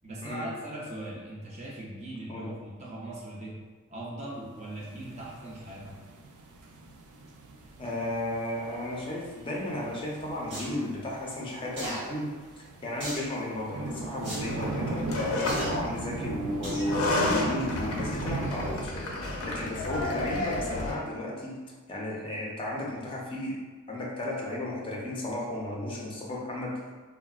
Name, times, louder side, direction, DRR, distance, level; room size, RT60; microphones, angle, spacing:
voice 1, 0.0-3.6 3.9-6.0, right 1 dB, 30° right, -4 dB, 0.6 m, -40 dB
sound 1, 4.6-18.9, right 2 dB, 80° right, 0.4 m, -38 dB
voice 2, 7.8-12.3 12.6-21.6 21.9-23.5 23.9-26.7, left 1 dB, 25° left, -4 dB, 0.5 m, -34 dB
sound 2, 10.5-10.7 11.8-12.0 13.0-13.3 14.2-14.4 15.4-15.7 16.6-16.9 17.4-17.5, right 1 dB, 55° right, 1.1 m, -36 dB
sound 3, 14.4-15.8 16.7-21.0, left 2 dB, 75° left, 0.5 m, -31 dB
3.5 x 2.1 x 2.3 m, 1.4 s
head